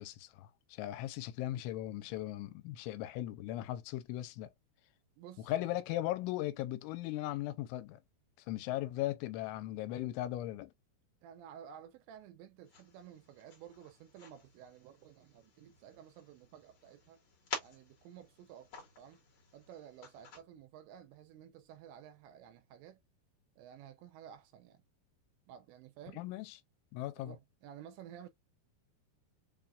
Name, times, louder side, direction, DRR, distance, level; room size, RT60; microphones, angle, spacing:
voice 1, 0.0-4.5 5.5-8.0 8.5-10.7 26.2-26.6 26.9-27.4, left 14 dB, 85° left, 3.0 m, -38 dB
voice 2, 5.2-5.7 11.2-17.2 17.6-19.2 19.5-23.0 23.6-24.8 25.5-26.2 27.2-28.3, right 9 dB, 85° right, 2.7 m, -53 dB
sound 1, 12.6-20.4, left 4 dB, 65° left, 1.3 m, -50 dB
7.2 x 2.4 x 2.3 m
omnidirectional pair, 5.5 m